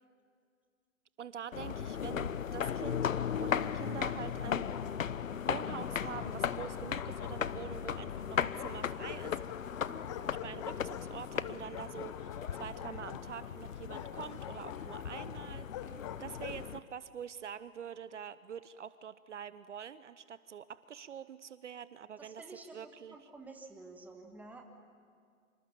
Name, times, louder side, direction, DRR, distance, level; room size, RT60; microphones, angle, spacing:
voice 1, 1.2-4.8 5.5-9.4 10.4-15.9 16.2-23.3, right 8 dB, 60° right, 15 dB, 0.8 m, -45 dB
sound 1, 1.5-16.8, left 8 dB, 70° left, 0.9 m, -37 dB
Bark, 4.4-5.4 6.3-7.9 8.6-16.7, left 11 dB, 20° left, 0.7 m, -47 dB
voice 2, 22.2-24.7, right 2 dB, 5° right, 3 dB, 1.5 m, -51 dB
26.5 x 26.0 x 7.2 m, 2.1 s
figure-of-eight pair, 135°, 41 cm